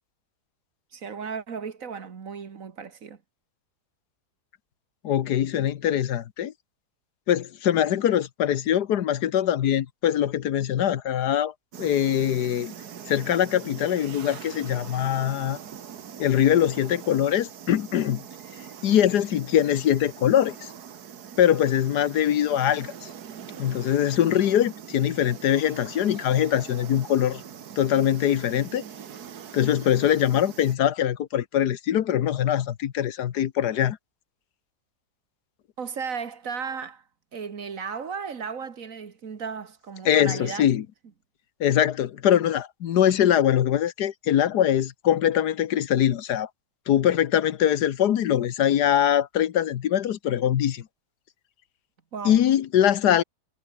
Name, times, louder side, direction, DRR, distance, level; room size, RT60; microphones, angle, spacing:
voice 1, 0.9-3.2 35.8-37.0 37.3-40.7 52.1-52.4, right 6 dB, 55° right, 1.9 m, -35 dB
voice 2, 5.0-6.5 7.3-12.7 13.1-15.6 16.2-18.2 18.8-20.7 21.4-23.1 23.6-27.4 27.8-28.8 29.5-34.0 40.0-40.8 41.6-46.5 46.9-50.8 52.2-53.2, left 10 dB, 80° left, 1.5 m, -22 dB
sound 1, 11.7-30.8, right 8 dB, 70° right, 1.8 m, -42 dB
omnidirectional pair, 1.7 m